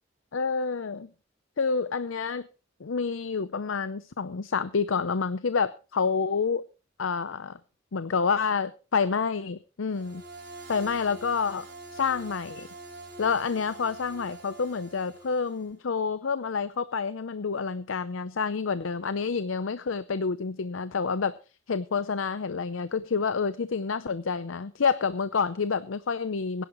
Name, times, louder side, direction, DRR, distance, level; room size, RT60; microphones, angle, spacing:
voice 1, 0.3-1.1 1.6-2.5 2.8-6.6 7.0-7.6 7.9-10.2 10.7-11.7 11.9-12.7 13.2-21.4 21.7-26.6, left 5 dB, 90° left, 14 dB, 0.6 m, -28 dB
sound 1, 9.9-15.7, right 2 dB, 60° right, 6.1 m, -45 dB
21.0 x 11.0 x 3.1 m, 0.32 s
head